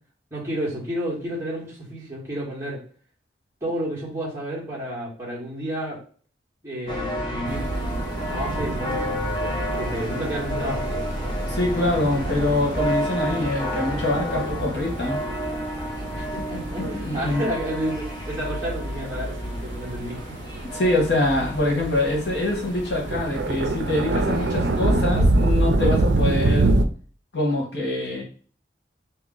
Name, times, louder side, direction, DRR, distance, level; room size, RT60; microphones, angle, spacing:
voice 1, 0.3-2.8 3.6-6.0 6.6-7.7 8.3-10.9 16.1-20.2, right 1 dB, 15° right, -7 dB, 1.7 m, -31 dB
sound 1, 6.9-25.2, equal, 25° left, 0.7 m, -31 dB
sound 2, 7.5-26.9, right 2 dB, 80° right, 0.5 m, -27 dB
voice 2, 11.5-15.2 16.8-17.4 20.7-26.7 27.3-28.2, left 2 dB, 70° left, -1 dB, 1.3 m, -24 dB
2.8 x 2.8 x 3.8 m, 0.43 s
head